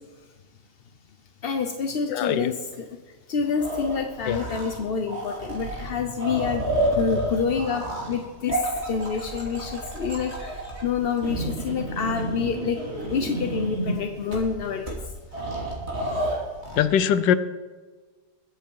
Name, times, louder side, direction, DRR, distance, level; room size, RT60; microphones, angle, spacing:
voice 1, 1.4-2.8 3.3-8.6 8.9-10.5 10.8-12.8 13.1-15.0, left 6 dB, 50° left, 5 dB, 0.7 m, -27 dB
voice 2, 2.1-2.5 4.3-4.5 16.8-17.4, left 9 dB, 80° left, 13 dB, 1.4 m, -22 dB
sound 1, 3.6-4.8 5.1-14.0 14.3-14.4 14.8-14.9 15.3-16.8, right 1 dB, 35° right, 3.0 m, -30 dB
21.5 x 8.0 x 4.6 m, 1.4 s
omnidirectional pair, 2.0 m